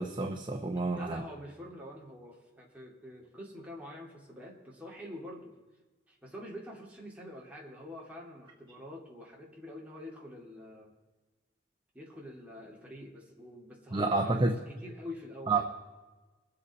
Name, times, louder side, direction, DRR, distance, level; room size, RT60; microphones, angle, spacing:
voice 1, 0.0-1.2 13.9-14.5 15.5-15.6, right 3 dB, 25° right, 4 dB, 0.7 m, -29 dB
voice 2, 0.9-5.5 6.1-10.9 11.9-15.6, left 1 dB, 10° right, -3 dB, 2.5 m, -46 dB
22.5 x 7.9 x 4.2 m, 1.2 s
head